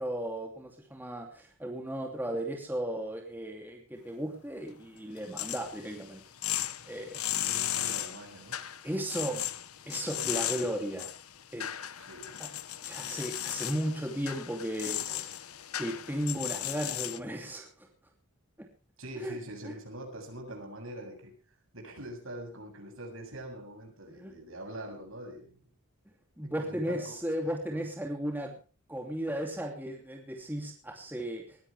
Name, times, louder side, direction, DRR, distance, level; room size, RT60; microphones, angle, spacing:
voice 1, 0.0-6.2 6.9-7.2 8.8-9.4 9.9-11.1 11.5-11.7 12.4-12.5 12.8-15.3 15.8-17.9 19.2-19.4 19.6-19.7 24.1-24.3 26.4-28.6 28.9-31.6, equal, 10° right, 1 dB, 2.8 m, -35 dB
sound 1, 5.2-17.2, left 12 dB, 90° left, 1.2 m, -36 dB
voice 2, 7.4-8.6 12.0-12.4 19.0-21.4 21.7-25.6 26.4-27.1 27.7-27.8, right 1 dB, 65° right, 3 dB, 7.5 m, -44 dB
20.5 x 16.0 x 3.4 m, 0.36 s
head